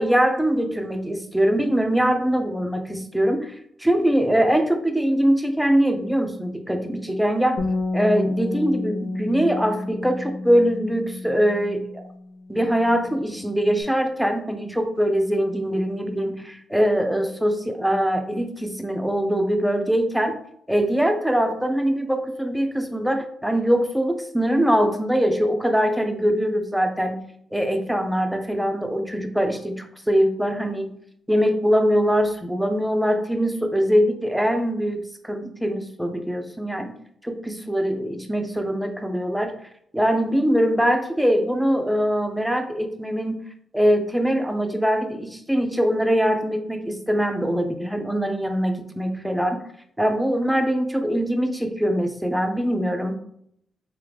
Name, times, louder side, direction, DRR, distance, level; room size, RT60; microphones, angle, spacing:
voice 1, 0.0-7.6 7.9-12.0 12.5-20.4 20.7-27.2 27.5-30.9 31.3-37.0 37.2-39.6 39.9-43.4 43.7-49.6 50.0-53.2, equal, 5° right, 5 dB, 0.6 m, -22 dB
Bass guitar, 7.6-13.8, left 2 dB, 55° left, 0.7 m, -31 dB
3.6 x 3.0 x 3.4 m, 0.69 s
cardioid pair, 95°, 0 cm